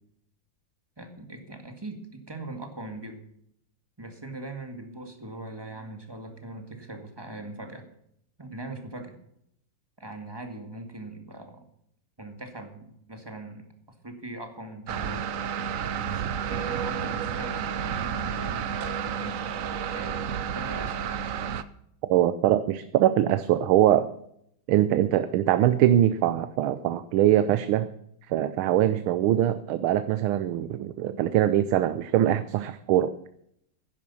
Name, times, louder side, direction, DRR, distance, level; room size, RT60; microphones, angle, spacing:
voice 1, 1.0-3.2 4.0-7.9 8.4-9.2 10.0-11.6 12.2-13.7 14.0-15.3 16.1-19.4 19.9-21.1, right 2 dB, 10° right, 5 dB, 1.7 m, -41 dB
sound 1, 14.9-21.6, right 8 dB, 75° right, 0.7 m, -31 dB
voice 2, 22.1-24.1 24.7-27.9 28.3-33.1, right 12 dB, 90° right, 12 dB, 1.5 m, -22 dB
11.0 x 10.5 x 7.0 m, 0.72 s
omnidirectional pair, 2.2 m